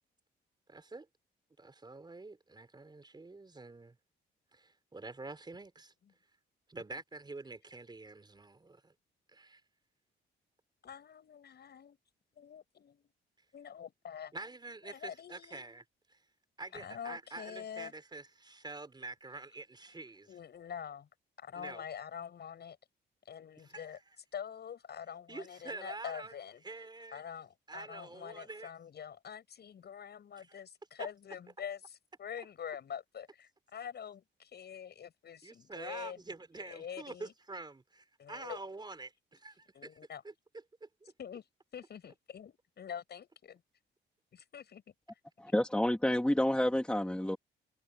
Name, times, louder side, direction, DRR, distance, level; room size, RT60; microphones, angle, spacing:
voice 1, 0.7-1.1 1.6-4.0 4.5-5.9 6.7-8.9 9.3-9.6 14.3-15.8 16.1-16.2 16.6-20.3 21.6-21.8 23.6-23.9 25.3-26.3 26.6-27.2 27.7-28.7 30.4-30.6 35.4-40.0 40.2-40.3 40.8-40.9, right 3 dB, 20° right, 3.9 m, -47 dB
voice 2, 10.8-12.0 12.4-13.1 13.5-14.3 14.9-15.6 16.7-17.9 20.3-21.1 21.4-22.8 23.3-24.0 24.3-26.6 27.1-36.2 36.6-37.3 38.2-38.6 39.7-40.2 41.2-41.5 41.7-43.6 44.3-44.8 45.5-45.6, left 8 dB, 55° left, 7.1 m, -45 dB
voice 3, 45.4-47.4, left 1 dB, 5° left, 2.8 m, -29 dB
cardioid pair, 90°, 20 cm